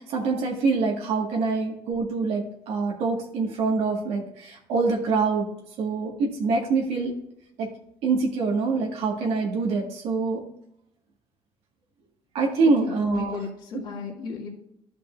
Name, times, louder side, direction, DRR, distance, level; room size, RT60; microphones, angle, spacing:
voice 1, 0.0-5.5 5.8-7.1 7.6-7.7 8.0-10.4 12.3-13.4, right 4 dB, 75° right, -1 dB, 1.9 m, -25 dB
voice 2, 12.8-14.5, left 5 dB, 45° left, -3 dB, 2.2 m, -36 dB
13.5 x 5.3 x 2.6 m, 0.77 s
cardioid pair, 170°, 10 cm